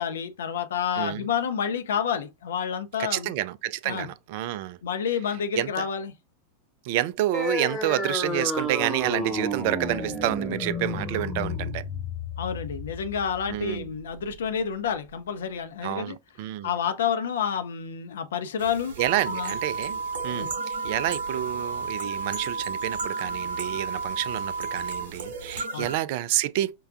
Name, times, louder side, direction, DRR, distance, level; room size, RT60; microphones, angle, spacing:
voice 1, 0.0-3.3 3.8-4.1 4.8-6.1 12.4-16.2 16.6-19.0 19.3-19.5 20.3-20.5 25.7-25.9, left 7 dB, 60° left, 0.5 m, -29 dB
voice 2, 3.0-4.8 5.5-5.9 6.8-11.8 13.5-13.9 15.8-16.7 19.0-26.8, right 14 dB, 50° right, 0.3 m, -29 dB
sound 1, 7.3-14.3, left 1 dB, 5° left, 1.1 m, -31 dB
sound 2, 18.6-26.0, right 3 dB, 65° right, 0.7 m, -39 dB
sound 3, 19.0-25.0, right 4 dB, 30° left, 0.8 m, -32 dB
5.3 x 2.2 x 2.4 m
figure-of-eight pair, 90°, 0 cm